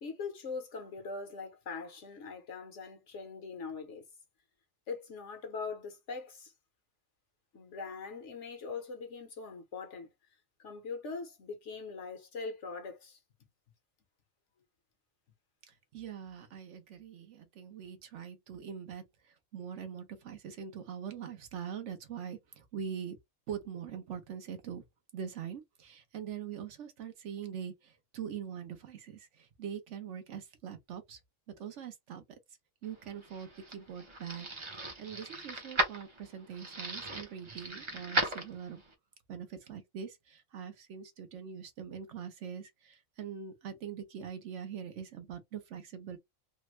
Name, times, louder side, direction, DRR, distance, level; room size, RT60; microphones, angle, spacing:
voice 1, 0.0-4.0 4.9-6.5 7.5-10.1 10.6-13.2, left 4 dB, 65° left, 1.3 m, -42 dB
voice 2, 15.7-23.2 23.5-24.8 25.1-31.2 31.6-32.2 32.8-34.5 34.8-38.8 39.3-46.2, right 8 dB, 65° right, 1.1 m, -43 dB
sound 1, 33.0-38.9, right 2 dB, 30° right, 0.6 m, -36 dB
3.4 x 2.2 x 3.0 m
omnidirectional pair, 1.4 m